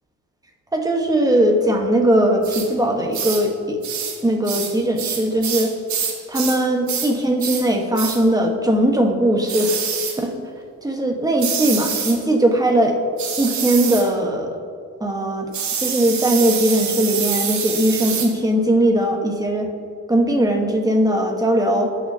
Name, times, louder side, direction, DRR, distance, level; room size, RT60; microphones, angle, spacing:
voice 1, 0.7-3.8 4.2-5.7 6.3-9.8 10.2-10.3 10.8-13.0 13.4-14.6 15.0-15.5 15.8-19.7 20.1-21.9, right 1 dB, 10° right, 2 dB, 1.3 m, -19 dB
sound 1, 2.4-2.7 3.1-3.5 3.8-4.2 4.5-6.6 6.9-7.1 7.4-7.7 8.0-8.2 9.5-10.2 11.4-12.2 13.2-14.1 15.5-18.3, right 7 dB, 70° right, 1.3 m, -26 dB
17.0 x 5.8 x 2.8 m, 2.2 s
cardioid pair, 90°, 30 cm